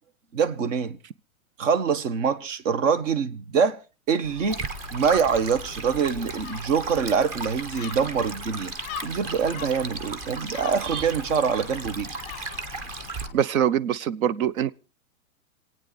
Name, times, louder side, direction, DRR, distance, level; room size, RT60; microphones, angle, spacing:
voice 1, 0.3-1.0 1.6-3.8 4.1-4.6 4.9-8.7 9.0-12.1, right 6 dB, 60° right, 1.5 m, -24 dB
Gull seagull, 4.2-13.3, left 12 dB, 15° left, 0.8 m, -43 dB
Stream, 4.5-13.3, right 3 dB, 25° right, 1.0 m, -36 dB
voice 2, 13.3-14.7, right 9 dB, 75° right, 0.9 m, -23 dB
27.0 x 9.2 x 4.1 m
hypercardioid pair, 165°, 41 cm